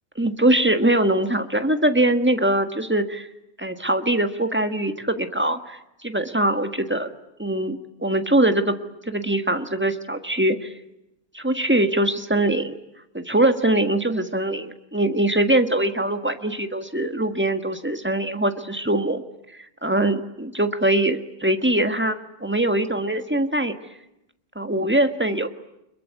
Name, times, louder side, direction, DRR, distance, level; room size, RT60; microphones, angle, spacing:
voice 1, 0.2-3.3 3.6-7.1 7.4-8.8 9.1-10.7 11.3-12.8 13.1-19.2 19.8-23.7 24.5-25.5, right 1 dB, 5° right, 8 dB, 1.3 m, -22 dB
25.5 x 22.0 x 9.4 m, 0.86 s
omnidirectional pair, 1.9 m